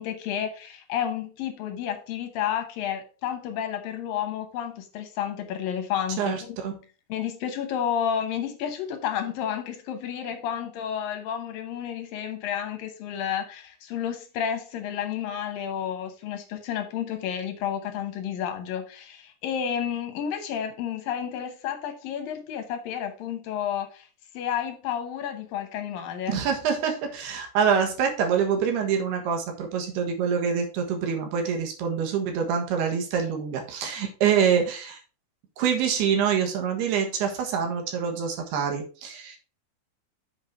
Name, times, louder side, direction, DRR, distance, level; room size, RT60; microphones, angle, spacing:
voice 1, 0.0-6.6 7.1-24.1 24.3-26.4, left 9 dB, 70° left, 2.2 m, -31 dB
voice 2, 6.2-6.7 26.3-35.0 35.6-39.4, right 7 dB, 70° right, 3.3 m, -26 dB
7.3 x 5.7 x 4.6 m
omnidirectional pair, 5.1 m